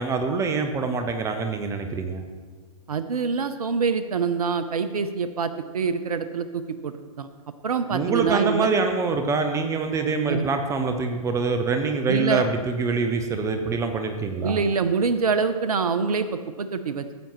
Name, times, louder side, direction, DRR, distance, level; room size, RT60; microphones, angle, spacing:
voice 1, 0.0-2.2 7.9-14.6, right 4 dB, 15° right, 6 dB, 0.7 m, -25 dB
voice 2, 2.9-7.3 7.6-8.8 10.3-10.5 12.1-12.4 14.4-17.2, right 5 dB, 80° right, 11 dB, 0.6 m, -25 dB
14.5 x 8.8 x 3.0 m, 1.4 s
figure-of-eight pair, 115°, 19 cm